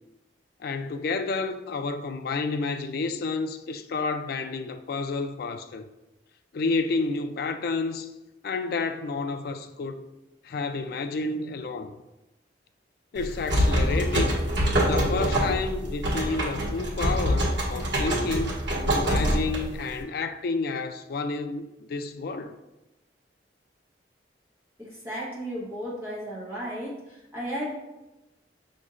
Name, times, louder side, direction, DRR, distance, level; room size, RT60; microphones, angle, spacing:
voice 1, 0.6-5.9 6.5-8.1 8.4-10.1 10.4-12.0 13.1-14.4 14.8-18.6 18.9-22.6, left 3 dB, 55° left, 0.3 m, -30 dB
sound 1, 13.2-20.0, equal, 80° right, 1.4 m, -25 dB
voice 2, 24.8-27.7, equal, 15° right, 1.1 m, -34 dB
6.1 x 3.0 x 2.5 m
head